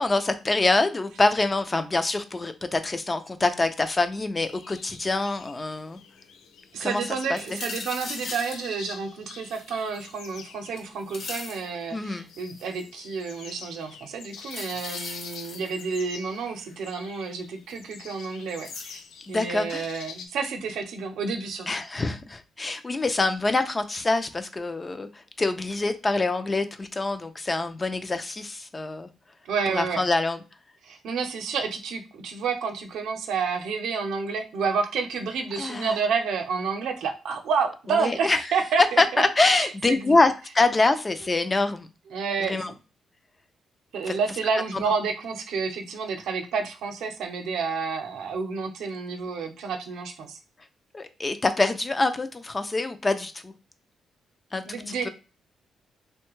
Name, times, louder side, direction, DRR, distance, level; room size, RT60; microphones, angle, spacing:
voice 1, 0.0-6.0 6.8-7.0 7.3-7.6 11.9-12.3 19.3-19.9 21.7-25.1 25.4-29.1 29.7-30.4 35.6-36.0 38.0-38.4 38.8-41.9 42.5-42.7 44.1-44.2 44.7-44.8 50.9-53.5 54.5-55.1, left 2 dB, 20° left, 9 dB, 0.3 m, -25 dB
sound 1, 4.4-20.3, left 6 dB, 80° left, 0.5 m, -46 dB
voice 2, 6.7-19.0 19.3-21.8 29.4-30.1 30.8-40.2 41.4-41.5 42.1-42.8 43.9-50.4 54.7-55.1, right 5 dB, 80° right, 5 dB, 0.6 m, -30 dB
sound 2, 7.4-8.6 9.5-10.4 10.8-11.7 12.3-12.8 14.4-16.0 17.7-17.8 18.6-19.0, left 3 dB, 45° left, 0.8 m, -38 dB
3.2 x 2.1 x 3.0 m, 0.33 s
cardioid pair, 150°, 0 cm